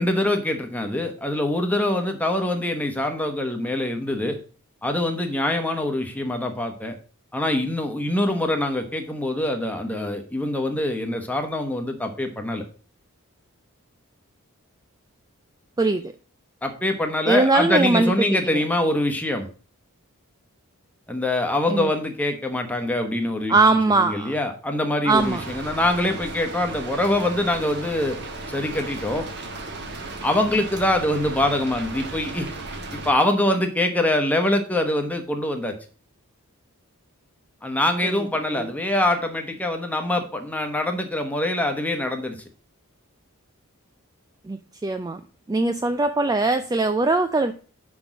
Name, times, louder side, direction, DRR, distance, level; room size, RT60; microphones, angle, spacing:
voice 1, 0.0-4.4 4.8-6.9 7.3-12.6 16.6-19.5 21.1-28.2 28.5-29.3 30.2-32.5 32.9-35.7 37.6-42.4, left 1 dB, 5° left, 4 dB, 1.0 m, -24 dB
voice 2, 15.8-16.1 17.3-18.6 21.7-21.9 23.5-24.3 25.0-25.4 38.5-38.7 44.4-45.2 45.5-47.5, right 3 dB, 15° right, 9 dB, 0.3 m, -21 dB
Rain, 25.1-33.1, right 2 dB, 50° right, 1.2 m, -35 dB
6.0 x 5.2 x 6.0 m, 0.38 s
head